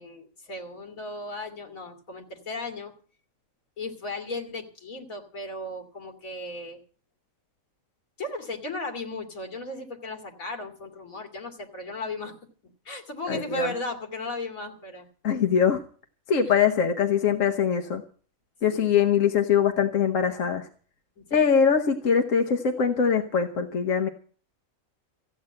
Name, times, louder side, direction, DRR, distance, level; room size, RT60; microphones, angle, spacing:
voice 1, 0.0-2.9 3.8-6.8 8.2-12.3 12.8-15.1 16.4-16.5 18.7-18.9 21.2-21.6, left 2 dB, 85° left, 4 dB, 2.8 m, -36 dB
voice 2, 13.3-13.7 15.2-15.8 16.3-18.0 18.6-20.7 21.3-24.1, left 7 dB, 70° left, 5 dB, 1.4 m, -22 dB
15.0 x 9.4 x 7.6 m, 0.43 s
omnidirectional pair, 1.4 m